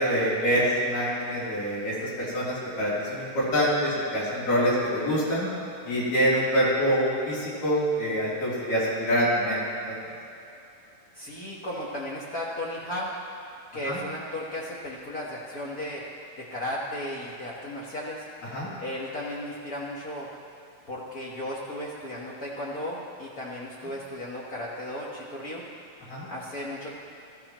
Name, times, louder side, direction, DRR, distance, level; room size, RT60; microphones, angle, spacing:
voice 1, 0.0-5.5 5.8-9.6 9.9-10.0 13.9-14.0 18.5-18.7 26.1-26.2, equal, 80° left, -8 dB, 5.0 m, -25 dB
voice 2, 11.1-13.1 13.7-16.0 16.4-18.3 18.8-20.3 20.9-25.6 26.3-26.9, left 1 dB, 60° left, -6 dB, 0.9 m, -35 dB
21.0 x 14.0 x 3.0 m, 2.7 s
omnidirectional pair, 3.7 m